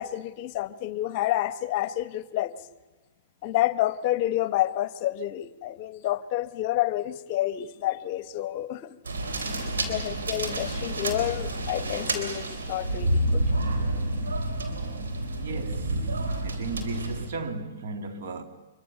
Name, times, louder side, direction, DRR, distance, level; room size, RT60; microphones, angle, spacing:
voice 1, 0.0-2.5 3.4-8.8 9.8-13.5, left 14 dB, 45° left, 0.9 m, -29 dB
sound 1, 9.0-17.3, right 1 dB, 85° right, 4.0 m, -29 dB
voice 2, 15.3-16.1 16.4-18.4, right 3 dB, 60° right, 2.4 m, -35 dB
25.0 x 23.5 x 6.8 m
hypercardioid pair, 120°, 0 cm